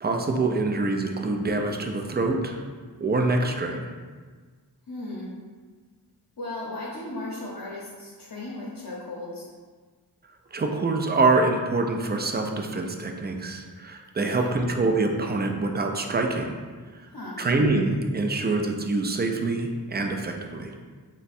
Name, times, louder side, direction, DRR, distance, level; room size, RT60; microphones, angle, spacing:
voice 1, 0.0-2.6 3.0-3.9 10.5-16.6 17.4-20.8, right 3 dB, 25° right, 3 dB, 0.3 m, -25 dB
voice 2, 4.9-5.3 6.4-9.5 14.2-14.5 17.1-17.4, left 2 dB, 60° left, -6 dB, 0.8 m, -36 dB
3.4 x 2.2 x 4.1 m, 1.5 s
wide cardioid pair, 65°, 40 cm